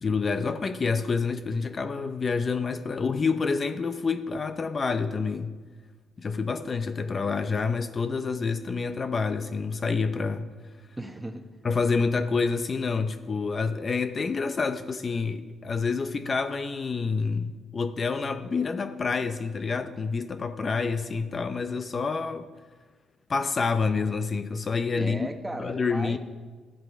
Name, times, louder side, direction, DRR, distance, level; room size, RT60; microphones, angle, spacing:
voice 1, 0.0-5.5 6.2-10.5 11.6-22.5 23.3-25.3 25.6-26.2, left 4 dB, 40° left, 9 dB, 0.7 m, -28 dB
voice 2, 11.0-11.5 25.0-26.2, right 1 dB, 10° right, 6 dB, 1.2 m, -36 dB
13.0 x 11.0 x 4.8 m, 1.5 s
cardioid pair, 90°, 0 cm